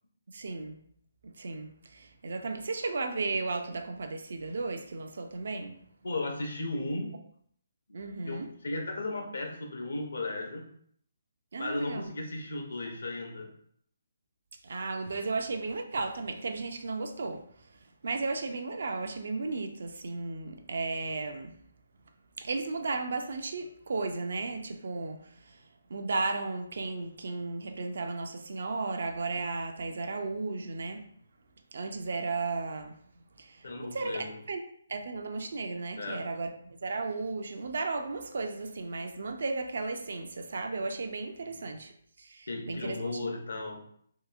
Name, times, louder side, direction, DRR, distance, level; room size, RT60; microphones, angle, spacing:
voice 1, 0.3-0.8 1.2-5.8 7.9-8.5 11.5-12.1 14.6-17.4 18.0-21.5 22.4-25.6 25.9-31.0 31.7-32.9 33.4-34.6 34.9-41.9 42.2-43.3, right 3 dB, 65° right, 6 dB, 0.4 m, -34 dB
voice 2, 6.0-7.1 8.2-10.6 11.6-13.5 33.6-34.3 36.0-36.2 41.5-41.6 42.5-43.8, left 2 dB, 70° left, 2 dB, 0.7 m, -35 dB
2.8 x 2.6 x 2.4 m, 0.65 s
figure-of-eight pair, 145°, 0 cm